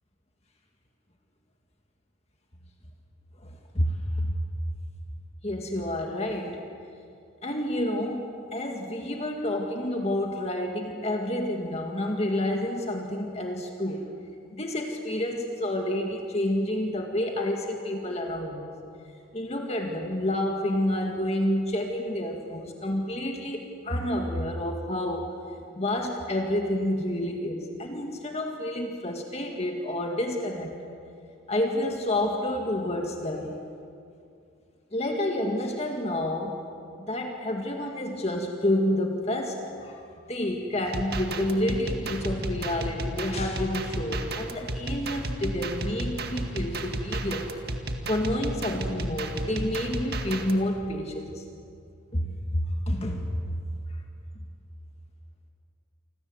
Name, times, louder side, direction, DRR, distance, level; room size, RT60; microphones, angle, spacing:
voice 1, 3.4-4.4 5.4-6.7 7.4-14.1 14.5-18.8 19.3-25.4 25.7-31.0 31.5-33.6 34.9-36.6 37.0-47.5 48.1-51.5 52.1-53.3, left 1 dB, 30° left, 2 dB, 2.0 m, -29 dB
sound 1, 40.9-50.6, right 2 dB, 50° right, 2.1 m, -32 dB
29.0 x 25.5 x 8.0 m, 2.5 s
head